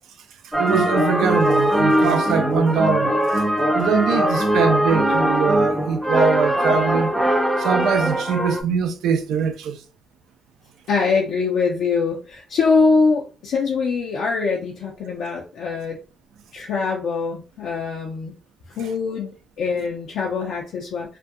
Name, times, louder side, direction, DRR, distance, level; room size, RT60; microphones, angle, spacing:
sound 1, 0.5-8.6, equal, ahead, 0.5 m, -20 dB
voice 1, 0.6-3.4 3.7-7.1 7.6-9.8, right 6 dB, 85° right, 0.4 m, -22 dB
voice 2, 10.9-16.0 16.5-18.3 18.7-21.2, left 4 dB, 80° left, 0.5 m, -23 dB
2.5 x 2.2 x 2.6 m
cardioid pair, 85°, 0 cm